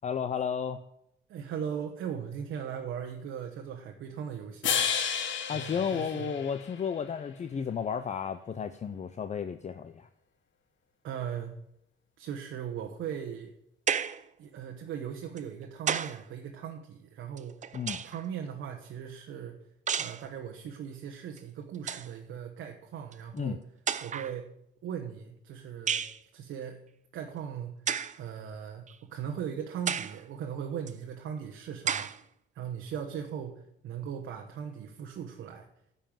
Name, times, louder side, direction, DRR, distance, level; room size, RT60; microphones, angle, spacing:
voice 1, 0.0-0.8 5.5-10.1 17.7-18.0 23.3-23.6, left 7 dB, 35° left, 10 dB, 0.6 m, -33 dB
voice 2, 1.3-4.9 5.5-6.3 11.0-11.5 12.2-13.5 14.4-17.5 18.0-19.5 20.0-23.6 24.0-24.5 24.8-26.0 26.3-26.8 27.1-27.7 28.1-28.8 29.1-32.1 32.5-35.7, right 8 dB, 75° right, 3 dB, 1.1 m, -38 dB
sound 1, 4.6-7.0, left 7 dB, 70° left, 1.2 m, -31 dB
sound 2, 13.9-14.3 15.4-16.2 17.4-18.3 19.9-20.3 21.4-21.5 21.7-22.1 23.1-23.2 23.9-24.4 25.9-26.2 27.9-28.2 28.9-29.0 29.9-30.2 30.9-31.0 31.9-32.2, right 7 dB, 40° right, 0.5 m, -32 dB
10.0 x 5.6 x 7.3 m, 0.76 s
cardioid pair, 90°, 20 cm